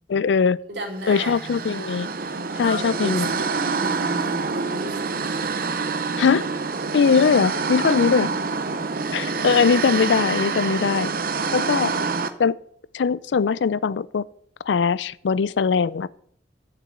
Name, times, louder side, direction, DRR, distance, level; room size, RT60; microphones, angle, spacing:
voice 1, 0.1-0.6 1.1-2.1 2.6-3.3 6.2-6.4 6.9-8.3 9.1-11.1 11.5-11.9 12.4-12.6 12.9-14.2 14.7-16.1, left 5 dB, 80° left, 0.4 m, -20 dB
voice 2, 0.7-1.7 2.2-2.3 2.6-5.8 7.9-8.3, right 1 dB, 85° right, 3.0 m, -34 dB
sound 1, 1.0-12.3, right 4 dB, 55° right, 0.8 m, -26 dB
7.6 x 6.7 x 8.2 m
head